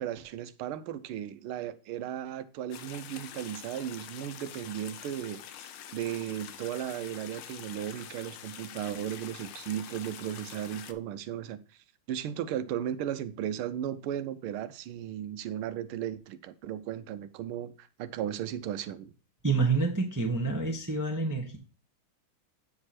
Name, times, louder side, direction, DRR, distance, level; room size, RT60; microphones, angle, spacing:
voice 1, 0.0-19.1, right 10 dB, 85° right, 1.5 m, -36 dB
sound 1, 2.7-10.9, left 10 dB, 80° left, 1.5 m, -46 dB
voice 2, 19.4-21.6, right 4 dB, 15° right, 0.6 m, -28 dB
8.7 x 4.8 x 4.2 m
omnidirectional pair, 2.4 m